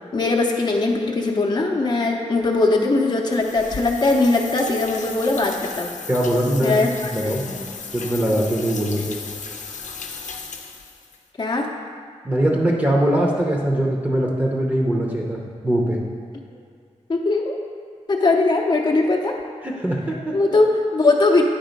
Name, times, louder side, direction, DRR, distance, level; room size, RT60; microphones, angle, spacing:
voice 1, 0.1-5.9 6.6-7.7 11.4-11.7 17.1-17.6 18.1-19.4 20.3-21.4, left 3 dB, 35° left, 0 dB, 0.6 m, -20 dB
sound 1, 3.3-11.2, left 5 dB, 85° left, 0.6 m, -35 dB
voice 2, 6.1-6.8 7.1-7.5 7.9-9.2 12.2-16.0 19.6-20.4, right 1 dB, 15° right, -2 dB, 0.7 m, -21 dB
8.9 x 3.7 x 5.1 m, 2.1 s
wide cardioid pair, 130°, 12 cm